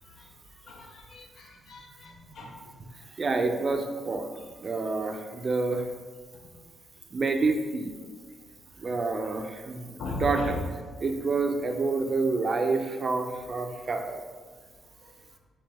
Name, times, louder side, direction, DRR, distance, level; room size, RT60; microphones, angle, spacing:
voice 1, 0.7-2.5 10.0-10.5, left 3 dB, 60° left, 2 dB, 0.7 m, -37 dB
voice 2, 3.2-4.3 4.6-5.9 7.1-7.9 8.8-10.6 11.0-14.2, right 3 dB, 35° right, 5 dB, 0.4 m, -28 dB
5.2 x 2.8 x 3.4 m, 1.5 s
cardioid pair, 130°, 0 cm